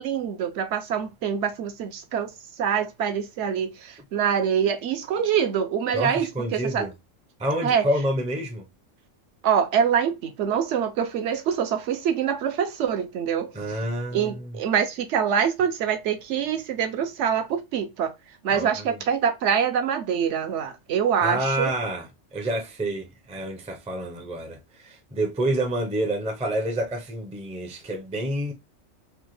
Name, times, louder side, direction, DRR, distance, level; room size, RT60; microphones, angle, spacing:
voice 1, 0.0-2.3 2.6-6.9 7.6-7.9 9.4-13.5 14.1-18.1 18.4-21.7, right 8 dB, 70° right, 0.9 m, -25 dB
voice 2, 5.9-6.9 7.4-8.7 13.5-14.6 18.5-19.0 21.2-28.5, right 1 dB, 10° right, 0.3 m, -28 dB
3.4 x 2.2 x 3.0 m
omnidirectional pair, 1.3 m